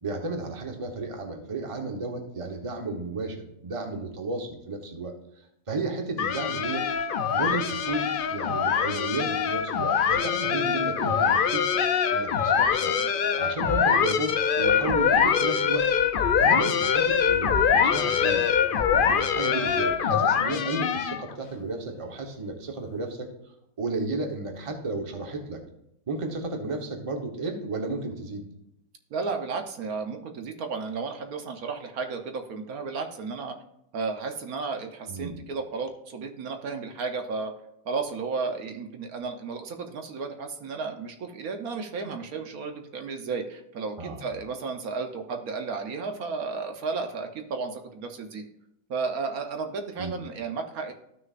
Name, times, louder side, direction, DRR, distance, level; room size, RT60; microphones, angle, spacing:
voice 1, 0.0-5.1 5.7-6.9 7.3-13.0 13.4-15.9 16.4-18.5 19.0-23.3 23.8-25.6 26.1-28.4 35.1-35.4 44.0-44.3 50.0-50.2, right 3 dB, 25° right, 3 dB, 1.0 m, -33 dB
sound 1, 6.2-21.3, left 7 dB, 85° left, 0.4 m, -24 dB
voice 2, 29.1-33.6 33.9-37.5 37.8-48.4 48.9-50.9, right 4 dB, 70° right, 5 dB, 1.3 m, -33 dB
13.5 x 6.4 x 2.5 m, 0.80 s
omnidirectional pair, 1.6 m